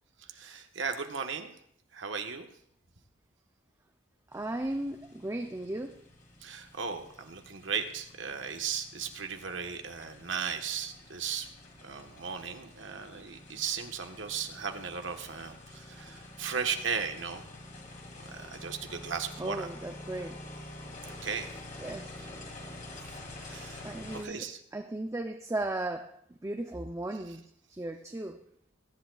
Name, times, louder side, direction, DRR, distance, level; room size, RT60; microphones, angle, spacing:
voice 1, 0.2-1.5 1.9-2.5 6.4-11.5 11.8-17.4 18.3-19.7 21.0-21.5 23.4-23.8 24.1-24.6 27.3-27.4, right 6 dB, 80° right, 5 dB, 1.3 m, -36 dB
sound 1, 4.3-24.2, left 1 dB, 40° left, 2.2 m, -48 dB
voice 2, 4.3-6.0 19.4-20.4 21.8-22.1 23.8-24.5 24.7-26.2 26.4-27.4 27.7-28.4, right 1 dB, 15° right, 5 dB, 0.5 m, -36 dB
21.0 x 10.5 x 2.4 m, 0.68 s
head